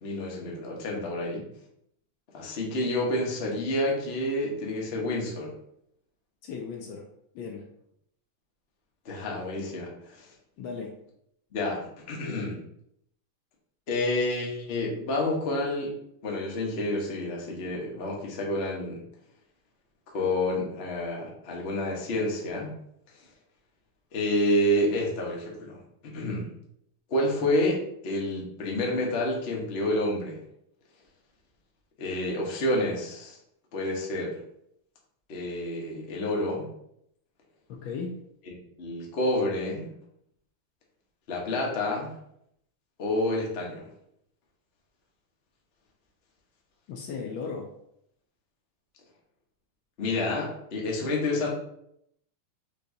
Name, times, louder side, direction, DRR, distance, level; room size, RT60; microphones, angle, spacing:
voice 1, 0.0-1.4 2.3-5.5 9.0-10.3 11.5-12.6 13.9-15.9 16.2-19.0 20.1-22.8 24.1-26.5 27.1-30.4 32.0-33.4 33.7-34.3 35.3-36.7 38.5-38.6 38.8-39.9 41.3-42.2 43.0-43.9 50.0-51.5, left 1 dB, 45° left, -1 dB, 0.8 m, -29 dB
voice 2, 6.4-7.1 7.3-7.7 10.6-11.0 37.7-38.2 46.9-47.8, left 5 dB, 75° left, 2 dB, 1.3 m, -36 dB
5.3 x 3.4 x 2.6 m, 0.74 s
omnidirectional pair, 2.4 m